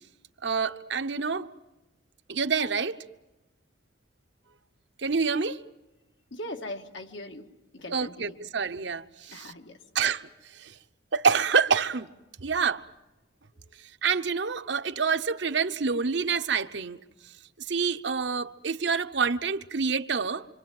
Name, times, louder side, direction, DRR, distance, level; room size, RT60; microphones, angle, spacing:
voice 1, 0.4-1.5 2.3-3.0 5.0-5.6 7.9-9.5 9.9-10.8 11.1-12.1 12.4-12.8 13.8-17.0 17.7-20.5, right 5 dB, 65° right, 0.9 m, -27 dB
voice 2, 6.3-7.5 7.7-8.4 9.3-9.8, left 1 dB, 70° left, 2.1 m, -40 dB
26.5 x 26.0 x 7.8 m
head